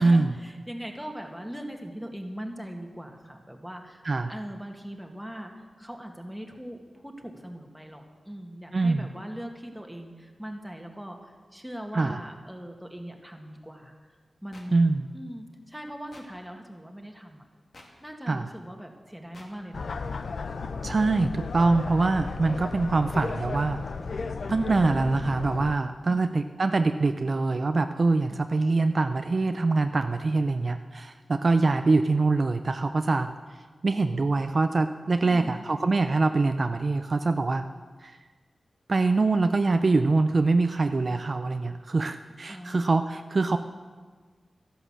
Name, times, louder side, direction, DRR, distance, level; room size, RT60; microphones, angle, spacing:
voice 1, 0.0-14.1 14.4-14.8 15.1-17.4 18.0-19.9 26.1-26.4 28.3-28.5 35.2-35.8 42.5-42.9, equal, ahead, 2 dB, 1.9 m, -40 dB
voice 2, 8.7-9.1 11.9-12.2 14.7-15.1 18.3-18.5 20.8-23.8 24.5-33.3 33.8-37.7 38.0-38.2 38.9-43.6, right 3 dB, 50° right, 8 dB, 0.5 m, -24 dB
sound 1, 14.5-14.7 16.1-16.3 17.7-17.9 19.3-19.5, left 2 dB, 55° left, 2.3 m, -49 dB
sound 2, 19.7-25.7, left 4 dB, 75° left, 0.7 m, -34 dB
13.0 x 11.0 x 7.3 m, 1.5 s
wide cardioid pair, 85°, 0 cm